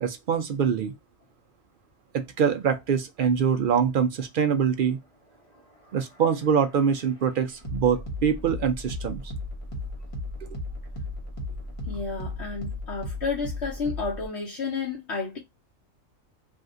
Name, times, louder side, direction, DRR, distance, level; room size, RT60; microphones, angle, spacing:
voice 1, 0.0-0.9 2.1-5.0 5.9-9.3, right 7 dB, 65° right, 0.5 m, -24 dB
sound 1, 5.6-14.3, left 1 dB, 30° left, 0.9 m, -36 dB
voice 2, 11.9-15.4, left 4 dB, 60° left, 1.1 m, -31 dB
3.5 x 2.4 x 2.5 m
omnidirectional pair, 1.4 m